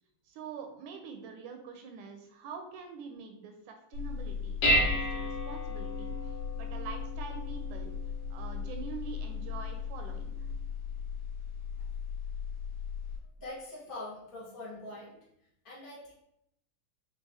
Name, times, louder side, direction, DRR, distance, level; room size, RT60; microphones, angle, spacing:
voice 1, 0.3-7.9 8.3-10.3, right 6 dB, 80° right, 4 dB, 1.9 m, -45 dB
Dishes pots and pans, 3.9-13.2, left 2 dB, 60° left, 1.8 m, -34 dB
voice 2, 13.4-15.2 15.6-16.1, left 2 dB, 85° left, -7 dB, 0.4 m, -43 dB
5.4 x 2.8 x 3.4 m, 0.79 s
omnidirectional pair, 3.6 m